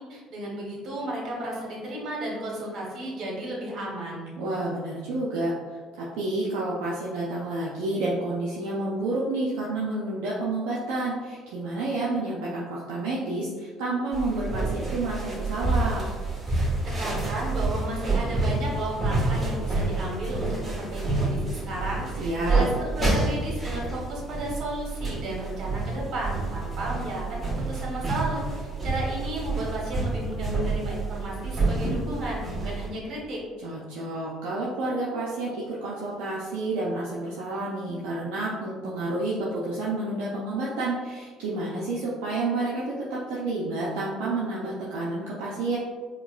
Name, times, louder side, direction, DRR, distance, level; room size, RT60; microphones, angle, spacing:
voice 1, 0.0-4.3 16.5-28.4 28.8-33.4, right 1 dB, 60° right, -3 dB, 1.1 m, -33 dB
voice 2, 4.4-16.1 22.2-22.6 33.6-45.8, right 2 dB, 80° right, -6 dB, 0.5 m, -30 dB
sound 1, 14.1-32.9, right 3 dB, 25° right, 1.5 m, -28 dB
4.5 x 2.2 x 2.4 m, 1.5 s
hypercardioid pair, 65°, 0 cm